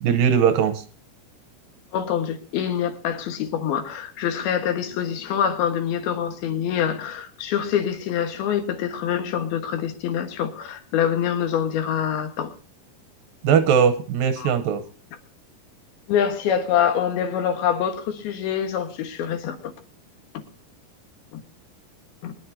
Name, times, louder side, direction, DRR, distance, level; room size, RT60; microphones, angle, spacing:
voice 1, 0.0-0.8 13.4-14.8, right 7 dB, 75° right, 2.3 m, -19 dB
voice 2, 1.9-12.5 14.4-14.5 16.1-19.7 20.3-20.4 21.3-21.4 22.2-22.3, left 9 dB, 70° left, 3.2 m, -25 dB
23.5 x 11.0 x 2.7 m
omnidirectional pair, 4.8 m